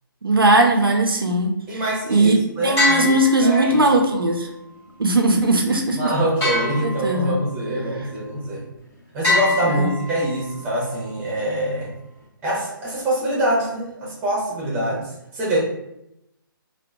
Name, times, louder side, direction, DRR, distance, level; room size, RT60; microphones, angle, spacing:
voice 1, 0.2-1.8 2.1-2.3 2.6-4.5 5.0-6.1 6.8-7.4 9.7-9.9, right 2 dB, 85° right, 2 dB, 0.4 m, -19 dB
voice 2, 1.7-3.8 5.9-8.6 9.1-11.9 12.4-15.0 15.3-15.6, right 1 dB, 15° right, -5 dB, 0.7 m, -24 dB
sound 1, 2.8-4.0 6.4-7.5 9.2-10.5, left 2 dB, 15° left, 0.9 m, -24 dB
2.8 x 2.0 x 2.2 m, 0.83 s
figure-of-eight pair, 140°, 12 cm